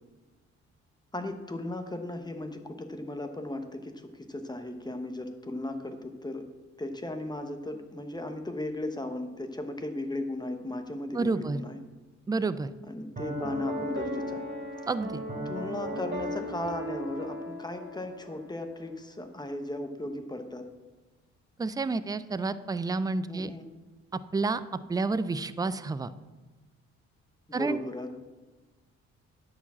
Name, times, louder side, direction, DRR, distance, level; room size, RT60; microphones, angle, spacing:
voice 1, 1.1-6.4 6.8-11.8 12.9-14.4 15.4-20.7 23.3-23.7 27.5-28.2, left 1 dB, 15° left, 6 dB, 1.0 m, -36 dB
voice 2, 11.1-11.6 12.3-12.7 14.9-15.2 21.6-23.5 24.1-24.6 24.9-26.1 27.5-27.8, right 3 dB, 15° right, 14 dB, 0.4 m, -29 dB
Piano, 13.2-18.5, equal, 35° right, 3.1 m, -36 dB
9.8 x 5.0 x 7.4 m, 1.2 s
cardioid pair, 90°, 30 cm